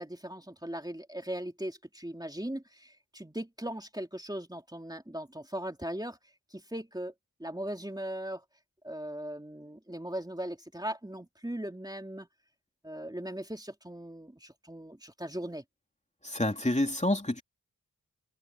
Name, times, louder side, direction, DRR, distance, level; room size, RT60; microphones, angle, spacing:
voice 1, 0.0-6.2 6.5-7.1 7.4-8.4 8.8-12.3 12.8-15.6, right 1 dB, 10° right, 3.1 m, -39 dB
voice 2, 16.2-17.4, left 1 dB, 20° left, 3.3 m, -28 dB
wide cardioid pair, 65°, 37 cm